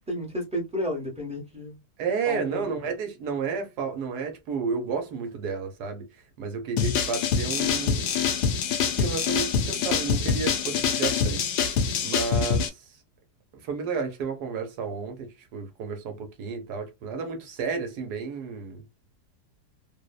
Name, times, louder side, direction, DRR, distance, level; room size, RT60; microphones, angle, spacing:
voice 1, 0.1-1.8 2.2-2.7, left 1 dB, 5° right, 0.6 m, -32 dB
voice 2, 2.0-6.1 6.4-8.1 8.8-11.4 12.0-12.8 13.6-18.8, right 5 dB, 80° right, 1.2 m, -31 dB
sound 1, 6.8-12.7, left 6 dB, 80° left, 1.1 m, -25 dB
2.9 x 2.0 x 2.2 m
omnidirectional pair, 1.7 m